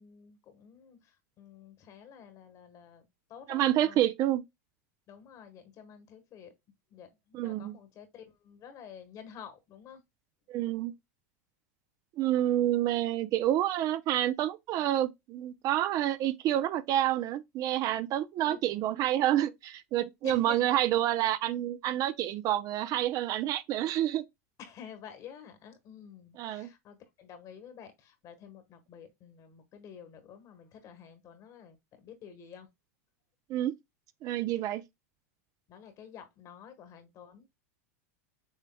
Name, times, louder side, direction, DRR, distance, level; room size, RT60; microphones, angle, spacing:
voice 1, 0.0-4.1 5.1-6.5 6.9-10.0 18.4-18.6 20.2-20.8 24.6-32.7 35.7-37.5, left 8 dB, 40° left, 1.4 m, -50 dB
voice 2, 3.5-4.4 7.3-7.7 10.5-10.9 12.2-24.2 26.4-26.7 33.5-33.7 34.2-34.8, right 12 dB, 45° right, 0.6 m, -28 dB
6.4 x 3.3 x 2.3 m
hypercardioid pair, 110°, 8 cm